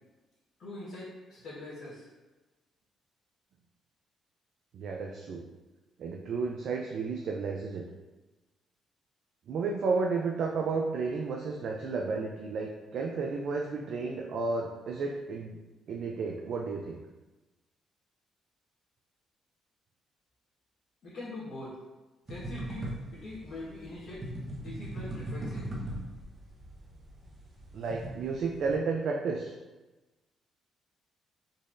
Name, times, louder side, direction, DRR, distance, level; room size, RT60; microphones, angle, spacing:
voice 1, 0.6-2.0 21.0-21.7 22.3-24.2 24.6-25.6, left 1 dB, 70° left, -10 dB, 1.2 m, -42 dB
voice 2, 4.7-5.5 6.0-7.8 9.5-15.6 15.9-17.0 27.7-29.5, right 4 dB, 65° right, 0 dB, 0.3 m, -32 dB
sound 1, 22.3-28.8, right 1 dB, 35° right, 1.0 m, -40 dB
4.0 x 3.0 x 2.5 m, 1.2 s
supercardioid pair, 65°, 0 cm